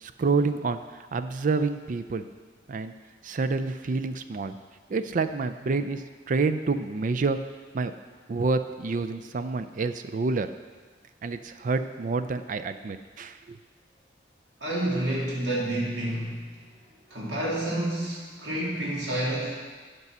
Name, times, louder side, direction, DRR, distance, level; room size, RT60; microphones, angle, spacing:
voice 1, 0.0-0.8 1.1-2.2 2.7-2.9 3.2-4.6 4.9-7.4 7.7-7.9 8.3-10.5 11.2-13.6, right 4 dB, 45° right, 10 dB, 0.4 m, -28 dB
voice 2, 14.6-16.5 17.1-19.5, right 1 dB, 80° right, -4 dB, 2.3 m, -29 dB
8.2 x 5.4 x 6.0 m, 1.4 s
head